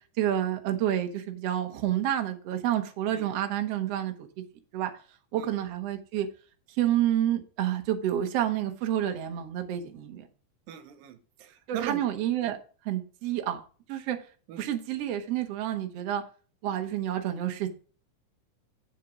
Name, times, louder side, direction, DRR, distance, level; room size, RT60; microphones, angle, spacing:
voice 1, 0.0-4.1 4.7-4.9 5.3-6.3 6.8-10.3 11.7-12.6 12.9-13.6 13.9-14.2 14.6-16.2 16.6-17.7, right 11 dB, 60° right, 2.0 m, -29 dB
voice 2, 10.7-12.0 12.4-12.5 14.5-14.7, right 10 dB, 90° right, 2.7 m, -39 dB
8.6 x 7.3 x 5.0 m
omnidirectional pair, 3.8 m